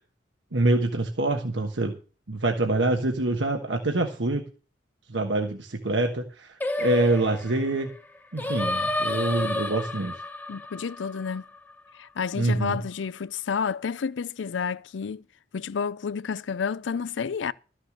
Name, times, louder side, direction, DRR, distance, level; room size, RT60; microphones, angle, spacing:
voice 1, 0.5-1.9 2.3-4.4 5.1-7.9 8.3-10.1 12.3-12.8, right 2 dB, 80° right, 1.3 m, -25 dB
Singing, 6.6-11.9, left 2 dB, 10° left, 1.1 m, -31 dB
voice 2, 10.5-11.4 12.0-15.2 15.5-17.5, left 6 dB, 90° left, 0.5 m, -30 dB
13.0 x 6.5 x 6.5 m
head